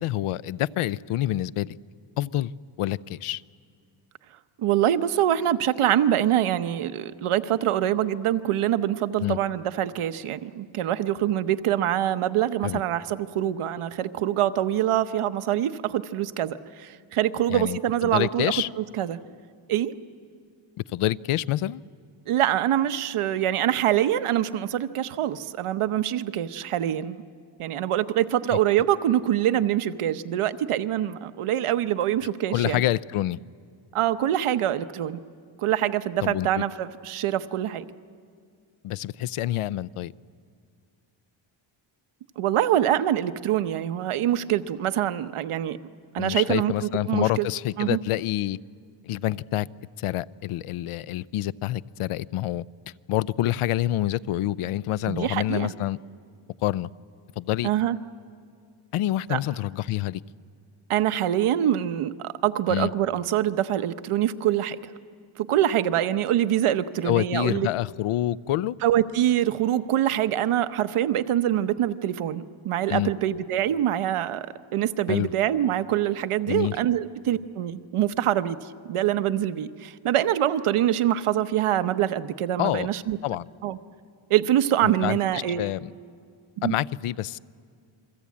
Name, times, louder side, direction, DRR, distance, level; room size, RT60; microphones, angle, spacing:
voice 1, 0.0-1.8 2.2-2.5 2.8-3.4 9.2-9.4 12.6-12.8 17.5-18.7 20.9-21.8 28.5-28.6 32.5-33.4 36.2-36.6 38.8-40.1 46.2-48.6 49.0-49.7 50.0-52.6 53.1-56.0 56.6-56.9 57.4-57.7 58.9-60.2 62.7-62.9 67.0-68.8 72.9-73.1 75.1-75.3 76.5-76.7 82.6-82.9 83.2-83.4 84.8-85.2 85.6-85.9 86.6-87.4, left 14 dB, 90° left, 19 dB, 0.6 m, -27 dB
voice 2, 4.6-19.2 19.7-19.9 22.3-27.2 27.6-32.8 33.9-35.2 35.6-37.8 42.4-45.8 46.1-47.5 47.8-48.0 55.1-55.7 57.6-58.0 59.3-59.4 60.9-64.8 65.4-67.7 68.8-74.5 74.7-78.6 78.9-83.2 83.6-83.8 84.3-85.7 86.6-86.8, right 11 dB, 90° right, 11 dB, 1.0 m, -24 dB
28.5 x 23.0 x 8.5 m, 2.1 s
wide cardioid pair, 140°, 49 cm